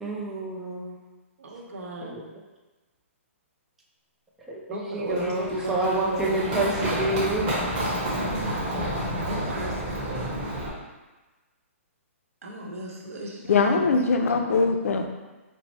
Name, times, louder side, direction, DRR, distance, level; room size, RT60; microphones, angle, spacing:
voice 1, 0.0-1.0 2.0-2.2 4.5-7.5, right 2 dB, 5° right, -4 dB, 0.4 m, -28 dB
voice 2, 1.4-2.2 4.7-6.6 9.3-9.7 12.4-13.8 14.3-14.7, right 1 dB, 80° right, -1 dB, 0.9 m, -35 dB
Run, 5.1-10.7, equal, 20° right, 0.9 m, -29 dB
voice 3, 13.5-15.1, left 4 dB, 75° left, 5 dB, 0.5 m, -22 dB
4.3 x 2.0 x 4.2 m, 1.2 s
hypercardioid pair, 165°, 8 cm